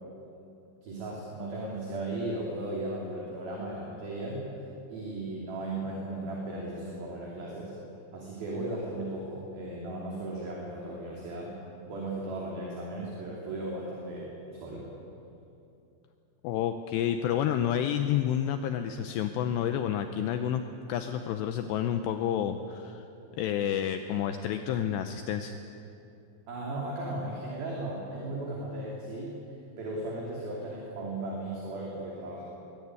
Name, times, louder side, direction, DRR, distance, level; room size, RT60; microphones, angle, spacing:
voice 1, 0.8-4.4 4.9-7.7 8.1-11.5 11.9-14.3 14.6-14.9 26.5-29.5 29.8-32.4, right 2 dB, 50° right, -3 dB, 4.4 m, -36 dB
voice 2, 16.4-20.6 20.9-23.0 23.4-25.6, left 10 dB, 85° left, 8 dB, 2.4 m, -29 dB
22.0 x 16.5 x 9.6 m, 2.7 s
omnidirectional pair, 5.9 m